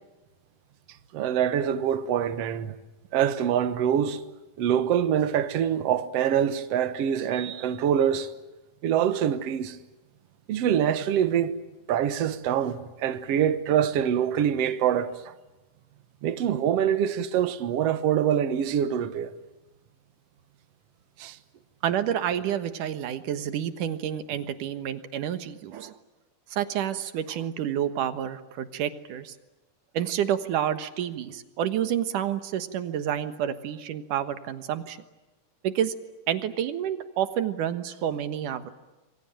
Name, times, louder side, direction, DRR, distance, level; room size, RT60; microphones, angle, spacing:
voice 1, 1.1-2.8 3.1-4.2 4.6-8.3 8.8-9.8 10.5-11.5 11.9-15.3 16.2-19.3 21.2-21.4, right 9 dB, 55° right, 2.1 m, -25 dB
voice 2, 21.8-26.0 26.5-29.3 29.9-35.0 35.6-35.9 36.3-38.7, right 10 dB, 75° right, 2.9 m, -29 dB
27.5 x 23.5 x 9.1 m
omnidirectional pair, 3.7 m